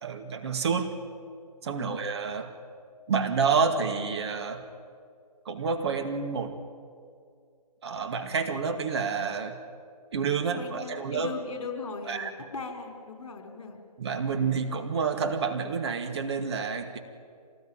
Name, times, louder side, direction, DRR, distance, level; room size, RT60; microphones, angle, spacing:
voice 1, 0.0-0.9 1.6-2.5 3.1-4.7 5.5-6.6 7.8-9.6 10.1-11.3 12.1-12.3 14.0-17.0, right 5 dB, 40° right, 5 dB, 2.3 m, -29 dB
voice 2, 1.6-2.0 10.5-13.8, left 4 dB, 50° left, 4 dB, 5.2 m, -39 dB
26.5 x 19.0 x 9.1 m, 2.2 s
figure-of-eight pair, 150°, 20 cm